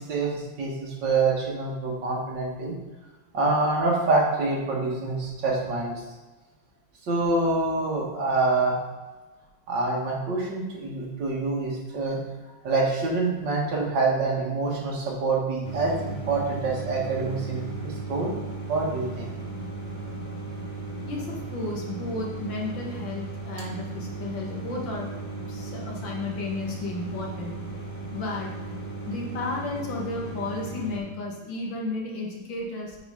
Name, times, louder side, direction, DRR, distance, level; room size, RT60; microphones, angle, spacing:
voice 1, 0.0-2.7 3.3-6.0 7.0-8.8 9.7-12.2 12.6-18.3 18.7-19.3, right 3 dB, 75° right, -3 dB, 2.3 m, -26 dB
sound 1, 15.6-31.0, right 3 dB, 35° right, 1.3 m, -36 dB
voice 2, 21.0-25.1 25.5-27.6 28.1-28.5 29.0-33.0, left 2 dB, 85° left, -1 dB, 2.1 m, -33 dB
8.0 x 4.2 x 5.0 m, 1.2 s
omnidirectional pair, 2.0 m